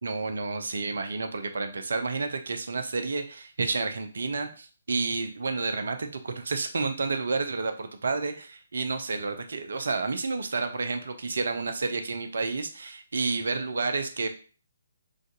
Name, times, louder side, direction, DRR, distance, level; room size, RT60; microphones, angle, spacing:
voice 1, 0.0-14.3, right 3 dB, 60° right, 7 dB, 0.5 m, -30 dB
3.3 x 2.5 x 3.9 m, 0.37 s
figure-of-eight pair, 135°, 0 cm